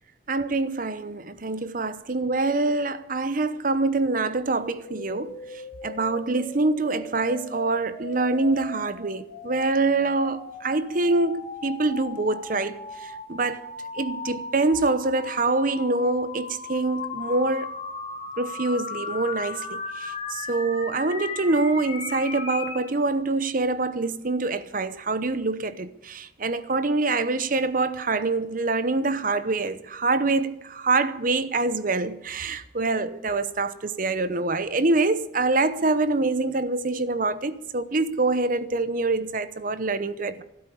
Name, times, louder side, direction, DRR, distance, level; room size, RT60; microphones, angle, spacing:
voice 1, 0.3-13.7 13.9-17.7 18.4-40.4, right 3 dB, 45° right, 0.8 m, -25 dB
beam sine, 4.0-22.8, left 3 dB, 30° left, 2.6 m, -37 dB
13.0 x 12.0 x 8.4 m
head